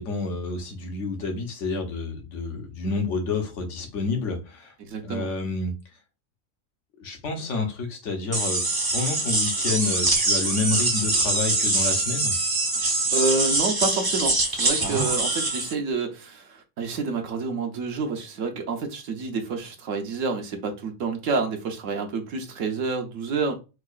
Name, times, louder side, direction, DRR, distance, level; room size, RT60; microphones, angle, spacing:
voice 1, 0.0-4.7 5.0-5.7 7.0-8.6 8.9-12.3, left 3 dB, 65° left, 1.2 m, -29 dB
voice 2, 4.8-5.3 13.1-23.5, right 4 dB, 70° right, 1.1 m, -28 dB
sound 1, 8.3-15.7, right 2 dB, 35° right, 0.3 m, -24 dB
4.6 x 2.4 x 2.4 m
omnidirectional pair, 1.4 m